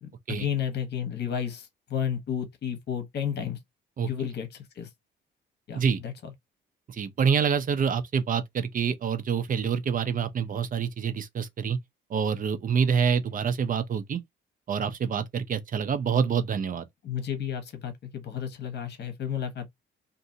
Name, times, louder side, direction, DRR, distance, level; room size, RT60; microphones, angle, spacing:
voice 1, 0.0-3.6 4.0-4.9 5.7-6.3 17.0-19.7, left 8 dB, 60° left, 1.1 m, -32 dB
voice 2, 6.9-11.8 12.1-14.2 14.7-16.9, right 6 dB, 45° right, 0.6 m, -26 dB
2.6 x 2.6 x 2.7 m
cardioid pair, 90°, 20 cm